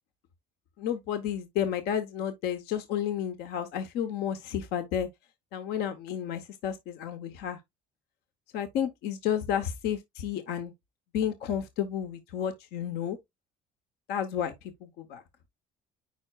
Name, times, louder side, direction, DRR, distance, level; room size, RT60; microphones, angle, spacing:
voice 1, 0.8-5.1 5.5-7.6 8.5-10.7 11.1-13.2 14.1-14.5 15.0-15.2, left 9 dB, 75° left, 0.9 m, -31 dB
9.4 x 4.6 x 2.3 m
supercardioid pair, 90°, 17 cm